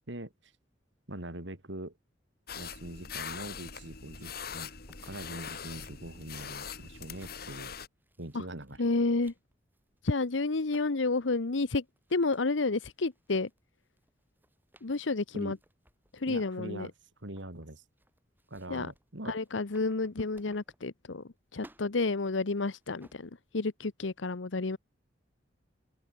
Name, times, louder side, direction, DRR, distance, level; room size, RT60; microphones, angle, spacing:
voice 1, 0.1-0.5 1.1-2.0 2.6-4.7 5.0-7.7 8.2-8.8 15.3-15.6 16.3-16.9 17.2-17.8 18.5-19.4, right 1 dB, 75° right, 3.4 m, -43 dB
sound 1, 2.5-7.9, left 7 dB, 55° left, 3.7 m, -42 dB
sound 2, 4.9-21.3 21.5-23.5, right 1 dB, 10° right, 8.0 m, -62 dB
voice 2, 8.8-9.3 10.0-11.8 12.1-13.5 14.8-15.6 16.1-16.9 18.7-18.9 19.3-21.2 21.5-24.8, left 3 dB, 90° left, 1.0 m, -30 dB
open air
head